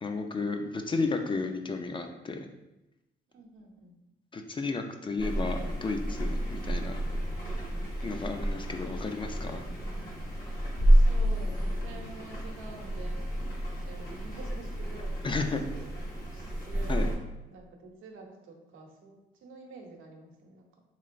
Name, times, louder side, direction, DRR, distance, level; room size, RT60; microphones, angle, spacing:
voice 1, 0.0-2.5 4.3-7.0 8.0-9.6 15.2-15.6 16.9-17.1, left 3 dB, 25° left, 5 dB, 0.3 m, -33 dB
voice 2, 3.3-4.0 7.5-7.9 9.8-10.3 11.1-13.3 13.9-15.9 16.7-17.2 17.5-20.8, right 3 dB, 85° right, 2 dB, 0.7 m, -48 dB
sound 1, 5.2-17.2, equal, 45° left, 1.2 m, -29 dB
3.7 x 3.1 x 2.5 m, 0.98 s
cardioid pair, 90°, 20 cm